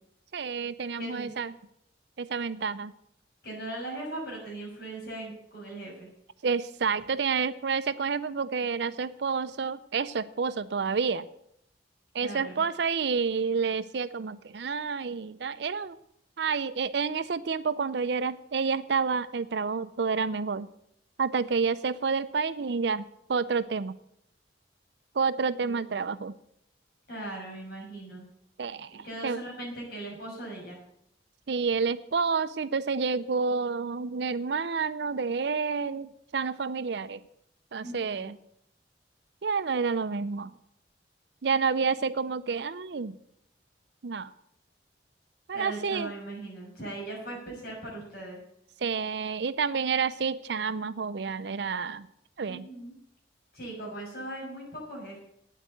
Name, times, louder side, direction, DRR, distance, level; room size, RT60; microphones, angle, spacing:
voice 1, 0.3-1.5 2.2-2.9 6.4-11.3 12.1-16.0 16.4-20.7 21.2-23.0 23.3-23.9 25.1-26.3 28.6-29.4 31.5-37.2 37.7-38.3 39.4-40.5 41.4-43.2 44.0-44.3 45.5-46.1 48.8-52.1 52.4-52.7, right 5 dB, 70° right, 13 dB, 0.5 m, -29 dB
voice 2, 1.0-1.3 3.4-6.1 12.2-12.6 25.6-25.8 27.1-28.2 28.9-30.8 37.8-38.3 45.5-48.4 52.5-52.9 53.5-55.2, right 1 dB, 55° left, -3 dB, 6.3 m, -39 dB
9.4 x 8.2 x 9.0 m, 0.74 s
head